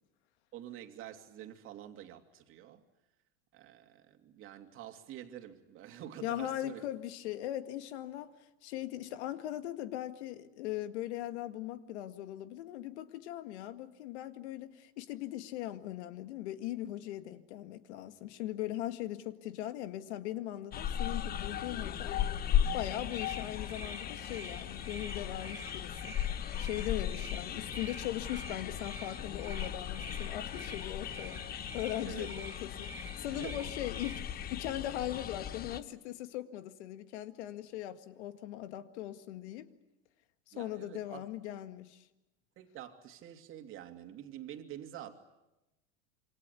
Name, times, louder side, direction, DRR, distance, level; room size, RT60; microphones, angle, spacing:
voice 1, 0.5-2.8 3.5-6.8 26.4-26.7 27.0-27.2 32.0-32.3 33.3-33.6 40.5-41.2 42.6-45.1, right 11 dB, 40° right, 2.8 m, -47 dB
voice 2, 6.2-8.3 8.6-22.2 22.7-26.2 26.6-31.4 31.7-39.7 40.5-42.1, left 13 dB, 75° left, 2.0 m, -39 dB
sound 1, 20.7-35.8, left 10 dB, 25° left, 1.0 m, -37 dB
sound 2, 23.0-34.2, right 3 dB, 5° right, 1.1 m, -50 dB
27.5 x 25.0 x 8.4 m
supercardioid pair, 150°, 34 cm